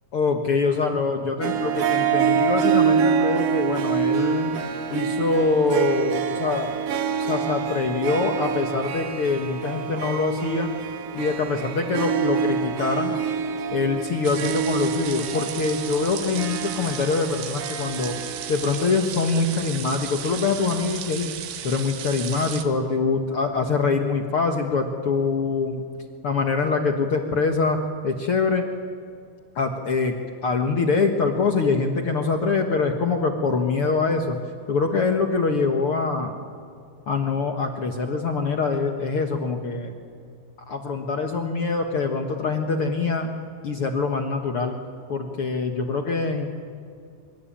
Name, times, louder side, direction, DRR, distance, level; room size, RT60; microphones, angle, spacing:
voice 1, 0.1-4.5 4.9-6.7 7.2-10.7 11.1-13.2 13.7-18.2 18.5-21.3 21.6-25.8 26.2-28.6 29.5-30.1 30.4-34.4 34.7-36.3 37.1-39.9 40.7-43.3 43.6-44.8 45.1-46.5, left 4 dB, 60° left, 4 dB, 1.5 m, -24 dB
Harp, 1.4-19.0, right 7 dB, 65° right, 1.7 m, -26 dB
sound 1, 14.2-22.7, right 10 dB, 85° right, 3.5 m, -35 dB
25.0 x 23.5 x 8.8 m, 2.5 s
omnidirectional pair, 4.5 m